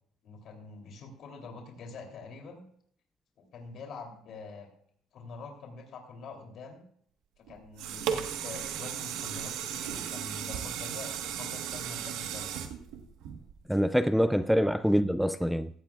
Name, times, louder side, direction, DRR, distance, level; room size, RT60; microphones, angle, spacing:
voice 1, 0.2-2.6 3.5-4.7 5.1-6.8 7.4-12.6, left 4 dB, 55° left, 3.1 m, -45 dB
sound 1, 7.5-13.8 14.3-14.4, right 9 dB, 80° right, 1.3 m, -36 dB
voice 2, 13.7-15.7, equal, ahead, 0.4 m, -25 dB
16.0 x 14.0 x 2.4 m
cardioid pair, 120°, 0 cm